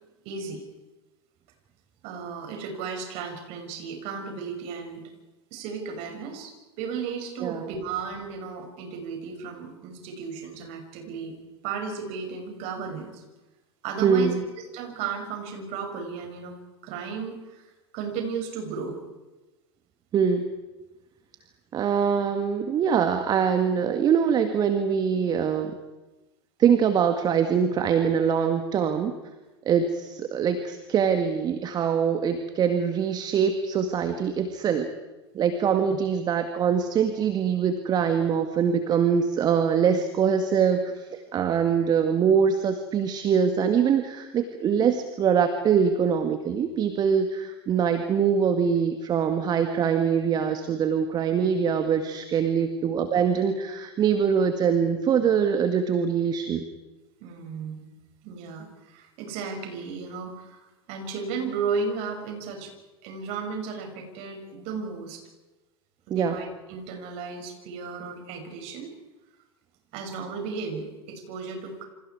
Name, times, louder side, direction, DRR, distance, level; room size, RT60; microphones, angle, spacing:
voice 1, 0.3-0.6 2.0-5.0 5.5-11.4 11.6-13.2 13.8-14.4 14.7-16.6 16.8-17.7 17.9-19.0 52.4-52.6 57.2-57.8 58.2-62.7 63.0-65.2 66.1-68.9 69.9-71.8, right 5 dB, 45° right, 3 dB, 7.1 m, -34 dB
voice 2, 14.0-14.4 20.1-20.5 21.7-25.8 26.6-29.1 29.7-34.9 35.3-56.6 66.1-66.4, right 7 dB, 30° right, 7 dB, 2.0 m, -23 dB
29.0 x 27.0 x 4.9 m, 1.1 s
figure-of-eight pair, 85°, 14 cm